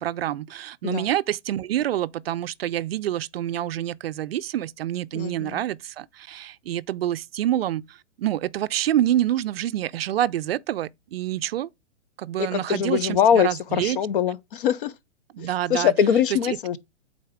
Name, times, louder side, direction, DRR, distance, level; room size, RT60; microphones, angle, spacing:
voice 1, 0.0-11.7 12.2-14.0 15.3-15.9 16.4-16.8, right 12 dB, 60° right, 0.4 m, -27 dB
voice 2, 5.1-5.6 12.4-14.9 15.4-16.8, left 8 dB, 50° left, 0.7 m, -23 dB
8.5 x 3.9 x 3.5 m
hypercardioid pair, 125°, 36 cm